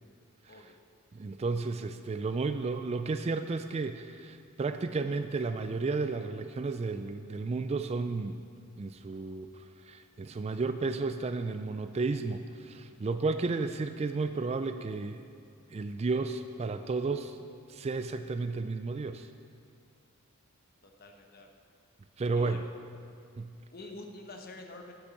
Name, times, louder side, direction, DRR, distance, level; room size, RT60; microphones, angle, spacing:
voice 1, 0.5-0.8 20.8-21.5 22.3-22.6 23.7-24.9, left 2 dB, 45° left, 3 dB, 1.0 m, -46 dB
voice 2, 1.1-8.4 8.8-15.3 15.7-17.4 17.7-19.3 22.2-22.6 23.4-23.5, right 3 dB, 30° right, 9 dB, 0.3 m, -33 dB
8.9 x 8.1 x 6.9 m, 2.3 s
head